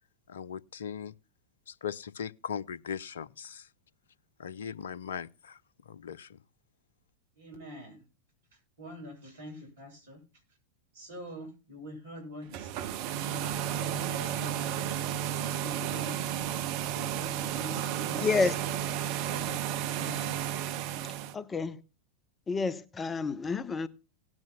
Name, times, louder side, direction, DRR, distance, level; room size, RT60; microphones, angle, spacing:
voice 1, 0.3-1.1 1.7-3.7 4.4-6.4, left 7 dB, 65° left, 0.6 m, -39 dB
voice 2, 7.4-8.0 8.8-10.2 10.9-13.0 13.2-16.2 16.9-18.5 19.3-19.7 19.9-20.4, equal, 60° right, 7.2 m, -45 dB
sound 1, 12.4-21.3, right 10 dB, 45° right, 0.9 m, -33 dB
voice 3, 18.2-18.5 21.3-21.8 22.5-23.9, left 4 dB, 15° left, 0.7 m, -29 dB
18.0 x 10.5 x 2.2 m
figure-of-eight pair, 90°, 0 cm